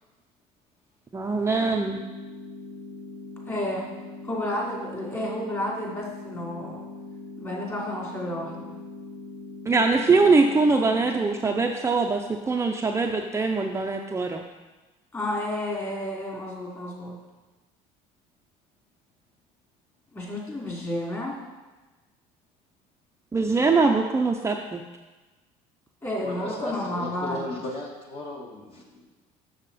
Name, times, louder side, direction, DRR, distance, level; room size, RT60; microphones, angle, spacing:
voice 1, 1.1-2.0 9.7-14.4 23.3-24.8, right 3 dB, 20° right, 2 dB, 0.6 m, -22 dB
sound 1, 1.6-11.6, left 3 dB, 80° left, 1.5 m, -41 dB
voice 2, 3.5-3.9 4.2-6.8 7.4-8.8 15.1-17.2 20.1-21.4 26.0-27.5, left 1 dB, 20° left, -3 dB, 2.8 m, -31 dB
voice 3, 26.2-29.1, left 1 dB, 40° left, -2 dB, 1.7 m, -35 dB
7.2 x 6.6 x 4.1 m, 1.2 s
supercardioid pair, 95°, 15 cm